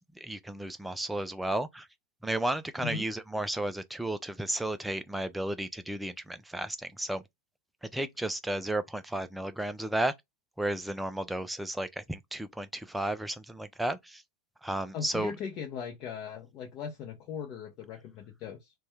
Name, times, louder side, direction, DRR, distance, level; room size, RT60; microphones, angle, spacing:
voice 1, 0.0-1.9 2.2-7.2 7.8-10.1 10.6-14.2 14.6-15.3, right 1 dB, 5° right, 0.3 m, -33 dB
voice 2, 14.9-18.7, left 7 dB, 35° left, 0.6 m, -39 dB
2.6 x 2.2 x 3.3 m
figure-of-eight pair, 90°, 0 cm